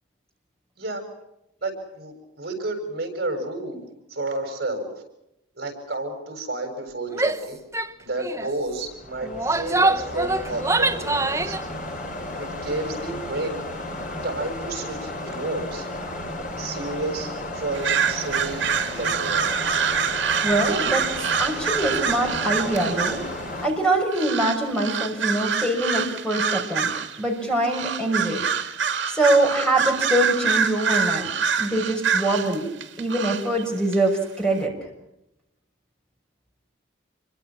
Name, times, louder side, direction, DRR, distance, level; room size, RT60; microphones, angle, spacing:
voice 1, 1.6-4.9 5.6-7.6 8.0-11.6 12.4-13.6 14.2-15.9 16.6-19.5, right 2 dB, 55° right, 5 dB, 7.2 m, -31 dB
Female speech woman speaking / Yell, 7.1-7.4 7.7-7.9 8.2-8.5 9.2-11.6, right 2 dB, 15° right, 1.1 m, -24 dB
sound 1, 8.6-23.7, left 1 dB, 45° left, 5.2 m, -34 dB
sound 2, 17.7-23.3 24.1-27.2 27.6-33.6 33.9-34.0, right 6 dB, 70° right, 2.5 m, -25 dB
voice 2, 20.4-23.2 23.6-26.9 27.2-28.4 29.1-31.3 31.6-32.7 33.0-34.7, right 1 dB, 5° left, 2 dB, 6.0 m, -23 dB
28.0 x 24.5 x 6.1 m, 0.86 s
head